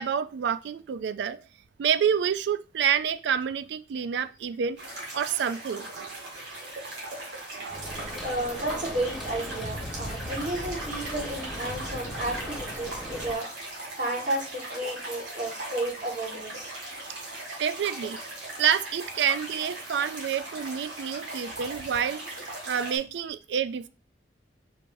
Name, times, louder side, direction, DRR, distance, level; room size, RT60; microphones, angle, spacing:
voice 1, 0.0-1.4 1.8-4.8 5.1-6.3 7.5-7.9 17.6-18.2 18.6-23.9, right 8 dB, 70° right, 14 dB, 0.3 m, -28 dB
sound 1, 4.8-23.0, right 2 dB, 90° right, 1.9 m, -39 dB
sound 2, 7.7-13.3, equal, ahead, 1.5 m, -38 dB
voice 2, 8.2-13.5 14.0-16.7 17.5-17.6, right 1 dB, 45° right, -2 dB, 1.6 m, -32 dB
4.5 x 4.4 x 2.6 m, 0.32 s
head